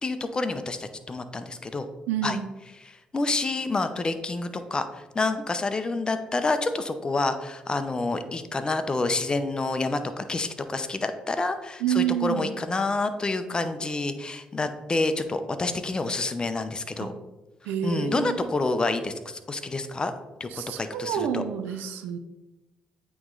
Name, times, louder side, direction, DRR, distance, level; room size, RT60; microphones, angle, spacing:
voice 1, 0.0-1.9 2.2-2.4 2.9-17.1 17.8-20.1 20.4-21.4, left 3 dB, 30° left, 9 dB, 0.6 m, -28 dB
voice 2, 2.1-2.5 11.8-12.5 17.0-17.1 17.6-18.4 20.5-22.2, right 9 dB, 90° right, 10 dB, 0.5 m, -28 dB
8.7 x 3.1 x 3.8 m, 1.1 s
supercardioid pair, 70°, 3 cm